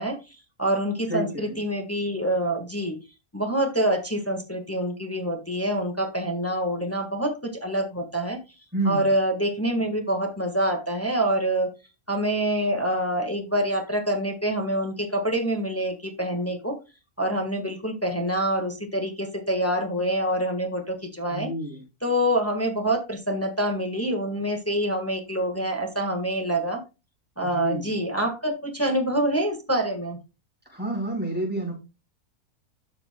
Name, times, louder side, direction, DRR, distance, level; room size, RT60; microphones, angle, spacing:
voice 1, 0.0-3.0 3.3-8.4 8.8-11.7 12.1-16.8 17.2-21.5 22.0-26.8 27.4-30.2, right 1 dB, 10° left, 4 dB, 1.4 m, -26 dB
voice 2, 1.1-1.6 8.7-9.1 21.3-21.8 27.4-27.9 30.7-31.7, right 2 dB, 5° right, -1 dB, 5.1 m, -29 dB
12.5 x 6.5 x 2.2 m, 0.28 s
omnidirectional pair, 1.6 m